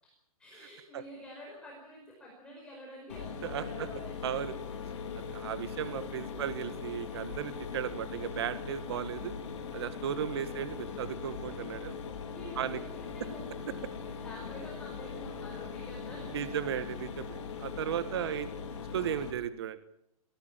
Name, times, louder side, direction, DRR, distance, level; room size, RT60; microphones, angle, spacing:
voice 1, 0.4-4.4 5.3-6.5 10.1-10.6 12.3-16.5 17.7-18.5, equal, 5° left, -3 dB, 5.3 m, -49 dB
Mechanisms, 3.1-19.3, left 6 dB, 50° left, 4.8 m, -40 dB
voice 2, 4.2-4.5 5.1-9.3 9.7-12.0 12.6-12.8 16.3-18.5 18.9-19.8, right 10 dB, 45° right, 12 dB, 1.6 m, -35 dB
23.0 x 16.5 x 9.0 m, 0.76 s
hypercardioid pair, 165°, 19 cm